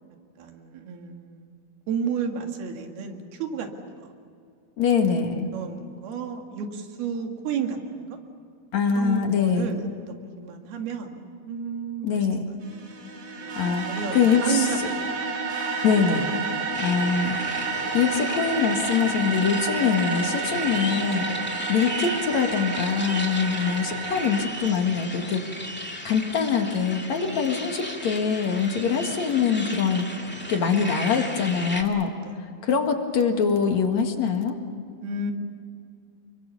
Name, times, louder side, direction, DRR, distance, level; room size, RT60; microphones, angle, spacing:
voice 1, 0.4-1.5 1.9-4.1 5.5-8.2 9.0-12.3 13.4-15.2 15.7-15.8 21.2-21.5 23.3-23.6 32.2-32.4 35.0-35.3, right 6 dB, 70° right, 4 dB, 3.9 m, -32 dB
voice 2, 4.8-5.5 8.7-9.7 12.0-12.4 13.6-13.9 14.1-14.7 15.8-16.3 16.8-17.4 17.9-21.3 21.7-25.4 26.0-30.1 30.5-32.1 32.6-34.6, left 6 dB, 50° left, 4 dB, 2.7 m, -23 dB
sound 1, 12.6-24.5, right 4 dB, 45° right, 3.1 m, -30 dB
sound 2, 16.7-31.8, equal, 15° left, 0.4 m, -36 dB
29.0 x 23.0 x 7.1 m, 2.3 s
omnidirectional pair, 4.7 m